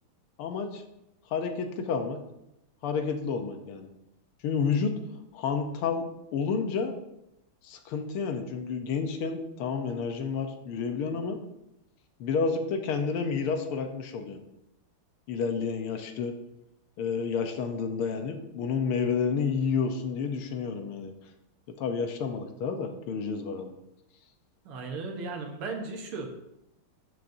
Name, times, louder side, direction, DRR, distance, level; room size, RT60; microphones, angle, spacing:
voice 1, 0.4-0.8 1.3-2.2 2.8-3.9 4.4-4.9 5.3-6.9 7.6-11.4 12.2-14.4 15.3-16.3 17.0-21.1 21.8-23.7, left 5 dB, 80° left, 6 dB, 1.8 m, -30 dB
voice 2, 24.7-26.3, right 3 dB, 80° right, 3 dB, 2.1 m, -36 dB
13.0 x 6.4 x 2.7 m, 0.87 s
omnidirectional pair, 2.4 m